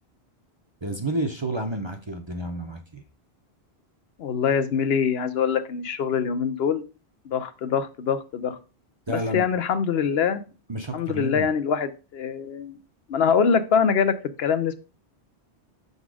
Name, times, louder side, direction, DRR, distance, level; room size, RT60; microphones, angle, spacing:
voice 1, 0.8-3.0 9.1-9.5 10.7-11.5, right 1 dB, 30° right, 5 dB, 0.6 m, -30 dB
voice 2, 4.2-6.8 7.3-8.6 9.1-10.4 10.9-12.8 13.1-14.7, left 6 dB, 70° left, 11 dB, 0.8 m, -24 dB
6.0 x 4.0 x 4.7 m, 0.33 s
omnidirectional pair, 1.1 m